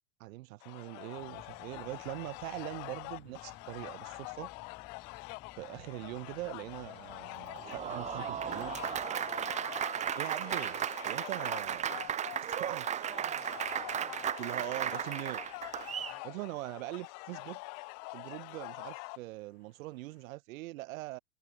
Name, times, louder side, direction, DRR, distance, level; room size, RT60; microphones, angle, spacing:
voice 1, 0.2-4.5 5.6-8.7 10.2-12.1 12.4-12.9 14.4-15.4 16.2-17.6 18.1-21.2, right 19 dB, 60° right, 2.3 m, -42 dB
sound 1, 0.6-19.2, left 40 dB or more, 45° left, 2.6 m, -45 dB
sound 2, 1.2-9.1, left 11 dB, 25° left, 3.2 m, -57 dB
Applause, 7.5-16.2, right 9 dB, 15° right, 0.8 m, -35 dB
supercardioid pair, 140°, 46 cm